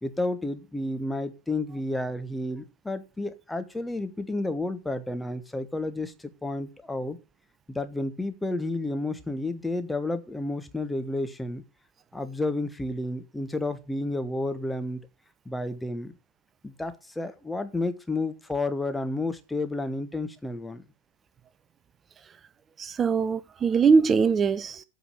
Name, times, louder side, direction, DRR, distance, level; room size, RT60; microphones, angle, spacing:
voice 1, 0.0-7.2 7.7-11.6 12.1-15.0 15.4-16.1 16.6-20.8, left 2 dB, 5° left, 1.1 m, -31 dB
voice 2, 22.8-24.8, right 5 dB, 20° right, 0.4 m, -22 dB
8.2 x 5.1 x 7.1 m
figure-of-eight pair, 90°, 0 cm